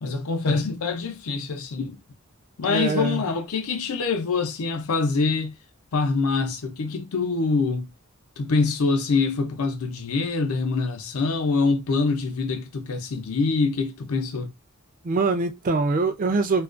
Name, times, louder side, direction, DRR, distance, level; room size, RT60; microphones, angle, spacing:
voice 1, 0.0-2.0 2.6-5.6 5.9-7.9 8.4-14.5, left 4 dB, 90° left, 0.5 m, -25 dB
voice 2, 2.7-3.2 15.0-16.6, right 3 dB, 40° right, 0.4 m, -23 dB
2.4 x 2.1 x 2.4 m
head